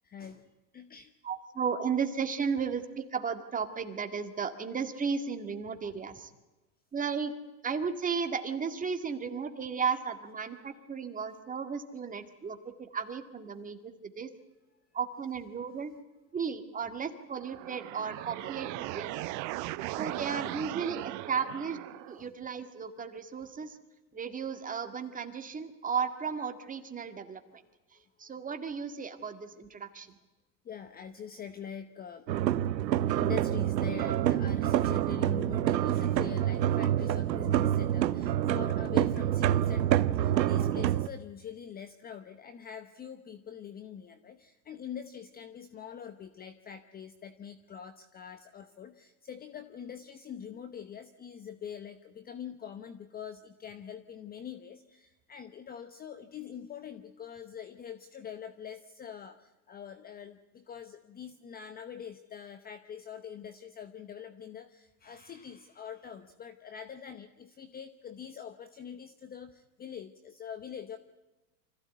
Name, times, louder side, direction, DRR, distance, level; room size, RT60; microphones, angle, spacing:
voice 1, 0.0-1.1 22.2-22.3 30.6-32.3 33.1-71.0, left 8 dB, 20° left, 11 dB, 0.9 m, -44 dB
voice 2, 1.2-6.3 6.9-7.3 7.6-14.3 14.9-15.9 16.3-19.2 20.0-21.8 22.1-23.8 24.1-27.4 28.2-30.1, right 6 dB, 15° right, 7 dB, 2.0 m, -34 dB
sound 1, 17.3-22.3, right 18 dB, 35° right, 0.9 m, -38 dB
sound 2, 32.3-41.1, right 11 dB, 90° right, 1.0 m, -27 dB
25.5 x 15.5 x 9.3 m, 1.1 s
hypercardioid pair, 130°, 50 cm